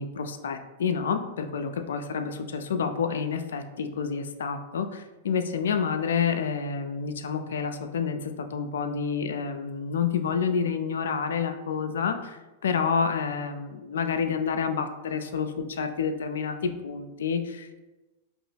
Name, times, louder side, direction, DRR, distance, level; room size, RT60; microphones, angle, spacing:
voice 1, 0.0-17.8, left 6 dB, 80° left, 7 dB, 0.3 m, -29 dB
3.0 x 2.6 x 3.3 m, 1.1 s
hypercardioid pair, 110°, 0 cm